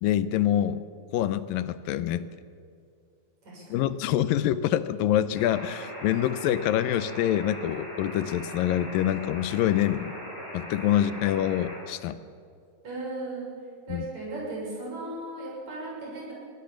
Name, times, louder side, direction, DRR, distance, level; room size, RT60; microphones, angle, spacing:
voice 1, 0.0-0.8 1.1-2.3 3.7-10.1 10.5-12.2 13.9-14.1, left 11 dB, 85° left, 14 dB, 2.5 m, -26 dB
voice 2, 3.4-3.8 12.8-13.5 13.9-16.3, right 2 dB, 50° right, -4 dB, 8.4 m, -36 dB
sound 1, 5.3-11.8, equal, 30° left, 8.4 m, -40 dB
23.5 x 17.0 x 7.4 m, 2.3 s
omnidirectional pair, 4.1 m